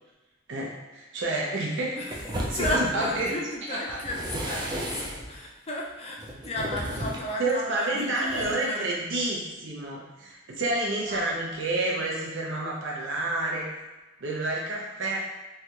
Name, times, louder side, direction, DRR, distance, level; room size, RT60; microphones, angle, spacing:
voice 1, 0.5-2.0 2.5-3.3 3.7-4.0 7.4-13.7 14.2-15.2, right 2 dB, 65° right, -3 dB, 0.7 m, -29 dB
voice 2, 1.9-8.8 11.1-11.3, left 1 dB, 30° left, -2 dB, 0.5 m, -34 dB
sound 1, 2.1-3.3 3.9-5.4 6.2-7.3 8.3-8.5, right 1 dB, 20° right, 0.4 m, -34 dB
3.2 x 2.4 x 2.9 m, 1.1 s
head